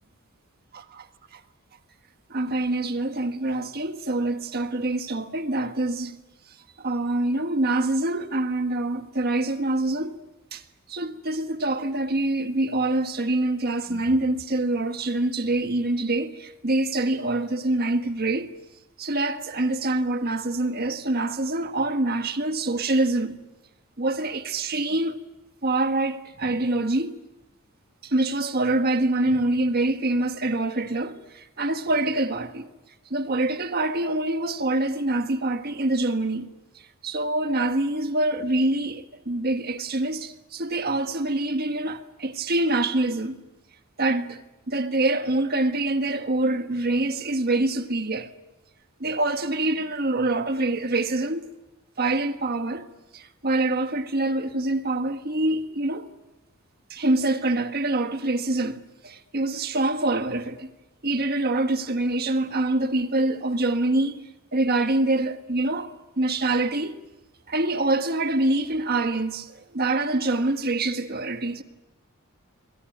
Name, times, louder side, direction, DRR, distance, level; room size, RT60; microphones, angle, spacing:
voice 1, 0.7-1.0 2.3-6.2 6.8-10.2 10.5-10.6 10.9-18.5 19.0-23.4 24.0-25.2 25.6-27.2 28.0-32.7 33.1-36.5 37.0-43.4 44.0-44.4 44.7-48.3 49.0-51.4 52.0-52.9 53.1-56.1 56.9-60.7 61.0-64.2 64.5-67.0 67.5-71.6, right 2 dB, 45° right, 1.6 m, -25 dB
27.0 x 23.0 x 9.4 m
head